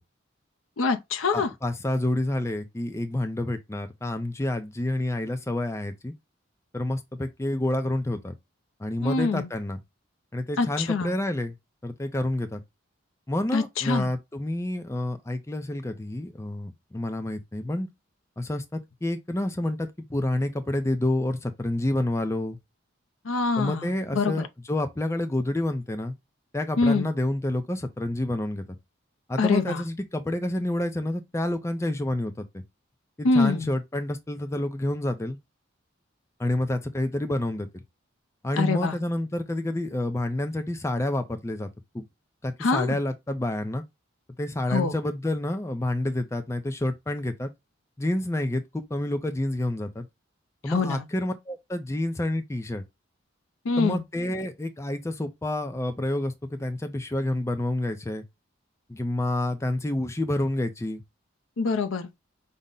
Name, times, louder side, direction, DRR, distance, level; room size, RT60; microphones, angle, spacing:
voice 1, 0.8-1.5 9.0-9.5 10.6-11.1 13.5-14.1 23.2-24.5 26.8-27.1 29.4-29.8 33.2-33.7 38.6-39.0 42.6-43.0 44.7-45.0 50.7-51.0 53.6-54.0 61.6-62.1, left 4 dB, 80° left, 0.6 m, -25 dB
voice 2, 1.3-6.1 6.7-8.3 8.8-9.8 10.3-11.6 11.8-12.6 13.3-17.9 18.4-22.6 23.6-26.1 26.5-28.6 29.3-32.6 33.2-35.4 36.4-37.8 38.4-41.7 41.9-42.0 42.4-43.8 44.4-47.5 48.0-50.1 50.6-52.8 53.8-58.2 58.9-61.0, left 1 dB, 15° left, 0.4 m, -28 dB
5.3 x 2.1 x 3.7 m
head